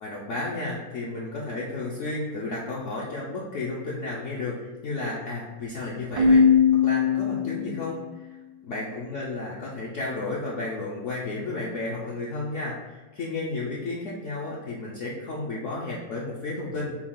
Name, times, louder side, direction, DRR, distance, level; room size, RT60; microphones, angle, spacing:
voice 1, 0.0-6.5 6.8-8.3 8.6-17.0, left 2 dB, 60° left, -5 dB, 0.8 m, -32 dB
Keyboard (musical), 6.2-8.0, left 6 dB, 70° right, 1.1 m, -20 dB
6.1 x 2.3 x 3.7 m, 1.2 s
omnidirectional pair, 1.8 m